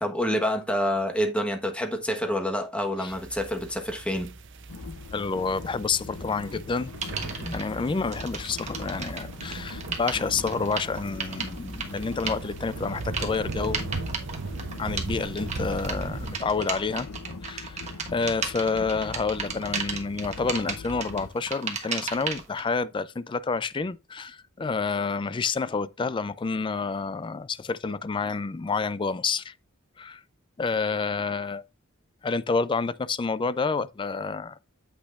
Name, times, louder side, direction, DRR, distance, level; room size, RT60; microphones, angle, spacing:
voice 1, 0.0-4.3, equal, 5° left, 1.2 m, -27 dB
sound 1, 3.1-16.4, right 3 dB, 60° right, 0.7 m, -38 dB
sound 2, 4.7-21.3, left 3 dB, 90° left, 0.7 m, -41 dB
voice 2, 5.1-6.9 7.4-13.8 14.8-17.1 17.4-17.8 18.1-29.5 30.0-30.2 30.6-31.6 32.2-34.6, left 4 dB, 25° left, 0.3 m, -29 dB
sound 3, 7.0-7.6 8.1-22.6, right 5 dB, 35° right, 1.4 m, -35 dB
8.4 x 8.2 x 2.5 m
head